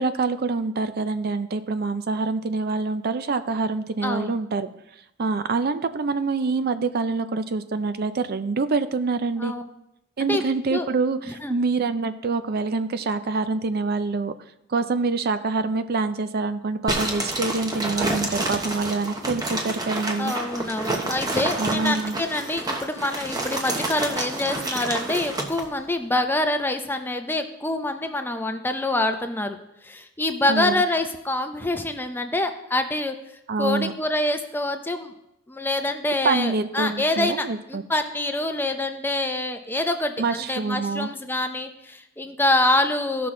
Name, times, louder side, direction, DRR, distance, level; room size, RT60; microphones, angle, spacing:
voice 1, 0.0-4.7 5.2-9.5 10.2-14.3 14.7-20.3 21.6-22.2 30.5-30.7 33.5-33.9 36.2-37.8 40.2-41.1, right 3 dB, 50° right, 11 dB, 0.5 m, -25 dB
voice 2, 4.0-4.3 9.4-9.6 10.2-10.4 10.7-10.9 11.4-11.6 20.2-29.6 29.8-33.2 33.6-35.1 35.5-43.3, left 2 dB, 10° left, 6 dB, 0.6 m, -26 dB
sound 1, 16.9-25.7, right 2 dB, 20° right, 1.1 m, -29 dB
15.0 x 5.9 x 3.7 m, 0.83 s
head